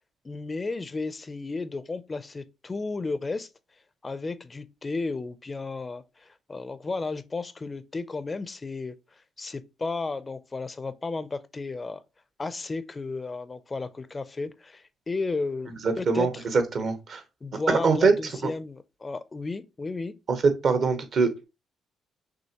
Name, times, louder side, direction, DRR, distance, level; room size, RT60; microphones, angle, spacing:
voice 1, 0.2-3.5 4.0-12.0 12.4-16.4 16.8-16.9 17.4-20.1, left 3 dB, 25° left, 0.4 m, -33 dB
voice 2, 15.8-17.2 17.7-18.1 20.3-20.4 20.6-21.4, right 4 dB, 60° right, 1.0 m, -23 dB
6.2 x 2.6 x 2.9 m
cardioid pair, 90°, 0 cm